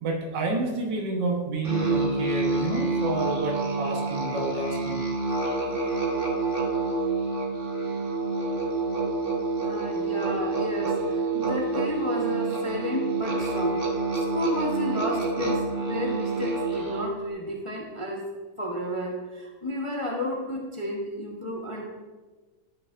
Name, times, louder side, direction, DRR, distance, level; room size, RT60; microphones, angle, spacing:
voice 1, 0.0-5.1, right 2 dB, 75° right, -1 dB, 1.9 m, -29 dB
Musical instrument, 1.6-17.2, right 3 dB, 35° right, 1.4 m, -28 dB
voice 2, 9.6-13.9 14.1-18.3 18.6-21.8, left 1 dB, 20° left, -2 dB, 0.8 m, -32 dB
13.0 x 6.7 x 2.5 m, 1.3 s
omnidirectional pair, 1.9 m